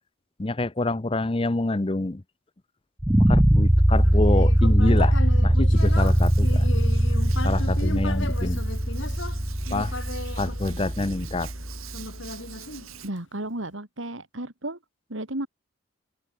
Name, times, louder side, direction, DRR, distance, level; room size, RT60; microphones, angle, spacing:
voice 1, 0.4-2.2 3.3-5.2 5.4-6.7 7.4-8.6 9.7-9.9 10.4-11.5, left 2 dB, 25° left, 0.6 m, -27 dB
sound 1, 3.0-12.0, equal, 10° right, 0.7 m, -21 dB
Human voice, 4.0-11.3 11.9-13.4, left 2 dB, 65° left, 4.7 m, -36 dB
Hands, 5.8-13.1, right 6 dB, 90° right, 4.0 m, -45 dB
voice 2, 13.0-14.8 15.1-15.5, right 1 dB, 70° right, 3.2 m, -33 dB
open air
head